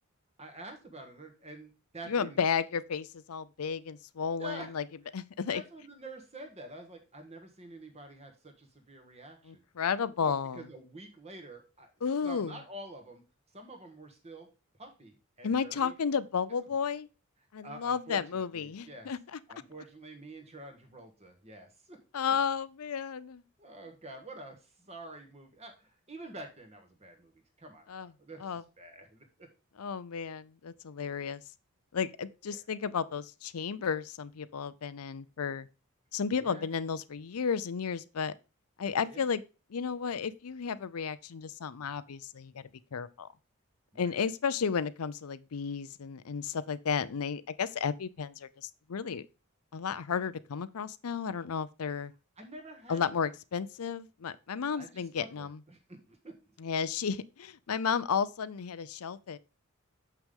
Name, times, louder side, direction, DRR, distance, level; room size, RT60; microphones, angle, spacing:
voice 1, 0.4-2.4 4.4-4.8 5.5-9.6 10.2-11.9 12.2-13.2 13.5-14.5 14.8-16.0 16.5-16.6 17.6-19.1 19.5-22.0 23.6-27.3 27.6-29.5 32.5-32.6 36.4-36.7 39.1-39.3 43.9-44.1 52.4-53.3 54.8-56.6, right 1 dB, 30° right, 1.6 m, -48 dB
voice 2, 2.1-4.8 5.1-5.6 9.5-10.6 12.0-12.5 15.4-17.1 17.5-19.4 22.1-23.4 27.9-28.1 28.4-28.6 29.8-31.4 31.9-35.7 36.1-38.3 38.8-39.4 39.7-43.3 44.0-49.2 49.7-52.1 52.9-55.6 56.6-59.4, left 6 dB, 90° left, 0.5 m, -33 dB
6.9 x 5.9 x 3.6 m
head